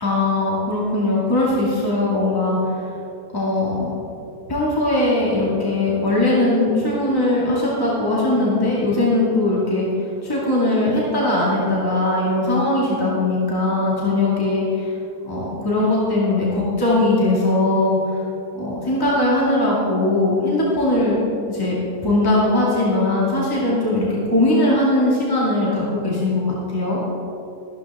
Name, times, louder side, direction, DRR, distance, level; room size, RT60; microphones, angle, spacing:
voice 1, 0.0-2.8 3.3-3.9 4.5-9.9 10.2-14.9 15.2-18.0 18.5-21.2 21.5-21.8 22.0-27.0, left 2 dB, 10° left, -6 dB, 2.3 m, -20 dB
13.5 x 13.0 x 3.7 m, 2.9 s
omnidirectional pair, 2.0 m